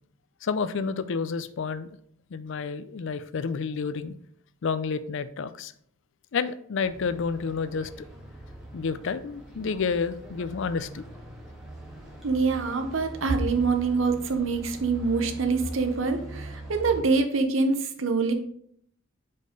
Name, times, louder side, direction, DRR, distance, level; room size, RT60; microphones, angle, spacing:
voice 1, 0.4-1.9 2.3-4.1 4.6-5.7 6.3-8.1 8.7-11.0, left 5 dB, 65° left, 13 dB, 0.4 m, -30 dB
sound 1, 6.8-17.0, right 1 dB, 5° right, 1.5 m, -42 dB
voice 2, 12.2-18.3, right 4 dB, 75° right, 7 dB, 0.8 m, -25 dB
5.1 x 4.3 x 5.1 m, 0.65 s
head